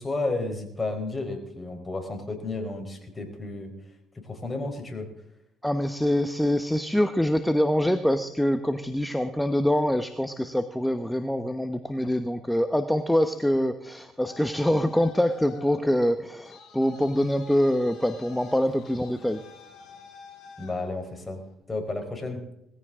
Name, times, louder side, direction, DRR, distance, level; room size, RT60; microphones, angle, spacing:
voice 1, 0.0-3.7 4.1-5.1 20.6-21.4 21.7-22.4, left 2 dB, 20° left, 4 dB, 4.4 m, -32 dB
voice 2, 5.6-19.4, equal, 5° left, 9 dB, 1.0 m, -25 dB
Traffic noise roadway noise, 13.8-21.5, left 5 dB, 60° left, 4.6 m, -49 dB
19.5 x 15.0 x 3.7 m, 0.84 s
supercardioid pair, 75°, 0 cm